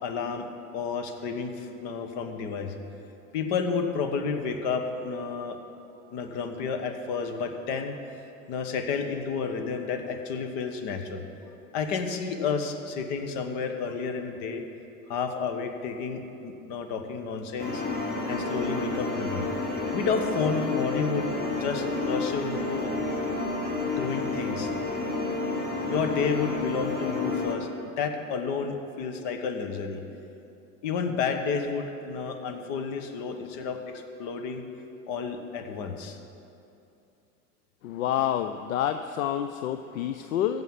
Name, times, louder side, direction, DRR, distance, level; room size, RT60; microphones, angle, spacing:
voice 1, 0.0-0.5 0.7-2.7 3.3-5.6 6.1-7.9 8.5-11.2 11.7-14.6 15.1-17.8 18.3-19.5 19.9-22.9 23.8-24.7 25.8-30.0 30.8-34.6 35.1-36.2, left 5 dB, 55° left, 6 dB, 1.4 m, -31 dB
sound 1, 17.6-27.6, left 2 dB, 25° left, 2.6 m, -30 dB
voice 2, 37.8-40.6, left 10 dB, 75° left, 9 dB, 0.6 m, -28 dB
15.0 x 5.7 x 7.4 m, 2.8 s
hypercardioid pair, 75°, 42 cm